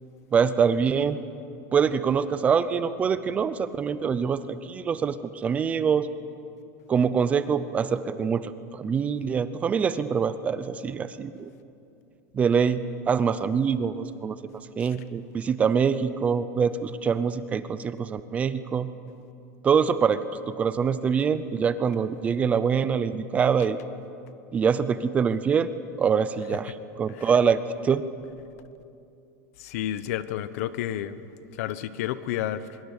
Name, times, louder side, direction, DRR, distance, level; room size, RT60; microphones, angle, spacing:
voice 1, 0.3-1.2 1.7-6.1 6.9-11.5 12.3-12.8 13.1-14.4 14.8-18.9 19.6-23.8 24.5-25.7 26.0-28.0, right 6 dB, 15° right, 14 dB, 0.5 m, -24 dB
voice 2, 29.6-31.2 31.6-32.8, left 11 dB, 60° left, 14 dB, 1.1 m, -31 dB
24.5 x 22.0 x 8.2 m, 2.6 s
supercardioid pair, 175°, 9 cm